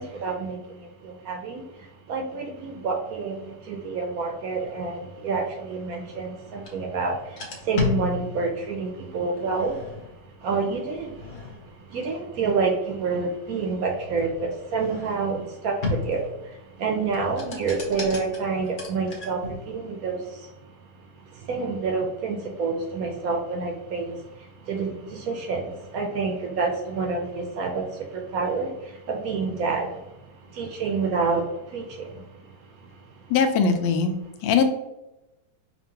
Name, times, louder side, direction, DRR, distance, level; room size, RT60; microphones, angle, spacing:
voice 1, 0.0-1.6 2.1-9.8 10.4-11.1 11.9-20.5 21.3-30.0 30.5-32.2, right 4 dB, 65° right, 2 dB, 0.9 m, -28 dB
sound 1, 6.6-6.7 7.2-8.7 9.4-10.2 10.9-11.8 13.0-15.4 15.8-16.4 17.0-19.7, left 5 dB, 40° left, 0.7 m, -34 dB
voice 2, 33.3-34.2 34.4-34.6, left 6 dB, 90° left, 7 dB, 1.3 m, -20 dB
5.5 x 2.5 x 2.8 m, 0.94 s
omnidirectional pair, 1.9 m